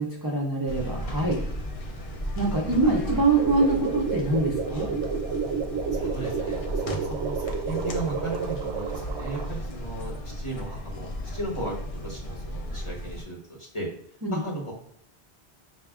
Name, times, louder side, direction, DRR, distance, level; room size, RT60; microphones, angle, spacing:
voice 1, 0.0-1.4 2.4-4.9 14.2-14.4, right 3 dB, 30° right, -4 dB, 0.5 m, -24 dB
sound 1, 0.7-13.3, equal, 55° left, 0.4 m, -35 dB
voice 2, 2.8-3.1 5.9-11.7 12.0-13.9 14.3-14.7, right 1 dB, 30° left, -2 dB, 0.8 m, -36 dB
sound 2, 3.4-9.5, right 5 dB, 80° right, 0.8 m, -30 dB
4.2 x 2.3 x 3.5 m, 0.64 s
omnidirectional pair, 1.1 m